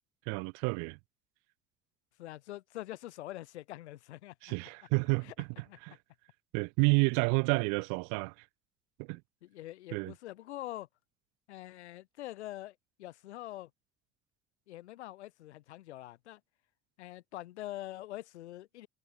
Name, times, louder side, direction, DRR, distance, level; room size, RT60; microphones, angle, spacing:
voice 1, 0.3-1.0 4.4-5.5 5.8-6.0 6.5-8.3 9.0-9.2 9.9-10.1, right 38 dB, 60° right, 0.9 m, -30 dB
voice 2, 2.2-4.3 5.2-5.3 5.7-5.8 9.4-10.9 11.5-13.7 14.7-16.4 17.0-18.9, left 15 dB, 75° left, 4.6 m, -44 dB
figure-of-eight pair, 60°, 34 cm